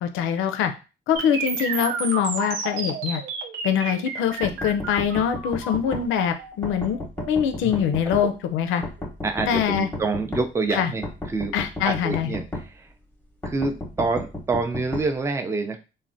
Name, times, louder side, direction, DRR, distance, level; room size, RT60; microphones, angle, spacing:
voice 1, 0.0-0.7 1.1-3.2 3.6-7.0 7.3-8.8 9.5-9.9 10.7-10.9 11.5-12.4, left 8 dB, 90° left, 8 dB, 0.4 m, -24 dB
sound 1, 1.2-9.1, right 5 dB, 85° right, 0.5 m, -32 dB
sound 2, 4.4-6.0 6.6-8.2 8.8-10.5 11.0-12.7 13.4-15.1, left 1 dB, 10° left, 0.8 m, -32 dB
voice 2, 9.2-11.5 11.8-12.9 13.4-15.8, right 3 dB, 15° right, 6 dB, 0.4 m, -27 dB
3.2 x 2.1 x 2.5 m, 0.31 s
cardioid pair, 90°, 20 cm